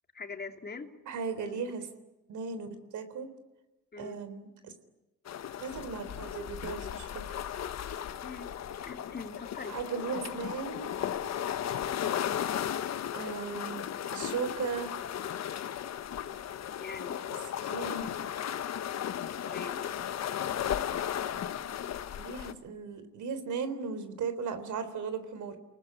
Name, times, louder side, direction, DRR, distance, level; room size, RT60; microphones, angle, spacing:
voice 1, 0.1-0.9 1.4-1.6 3.9-4.2 8.2-8.5 8.8-10.0 16.8-17.2 17.6-17.7 19.4-19.9, left 4 dB, 35° left, 5 dB, 3.0 m, -42 dB
voice 2, 1.1-1.9 2.3-3.3 4.0-4.7 5.6-7.1 9.7-10.9 13.1-13.8 14.1-14.9 17.6-18.1 22.2-25.6, right 5 dB, 75° right, 11 dB, 3.8 m, -36 dB
sound 1, 5.2-22.5, left 10 dB, 60° left, 1.4 m, -35 dB
29.0 x 19.5 x 9.9 m, 1.0 s
cardioid pair, 90°, 30 cm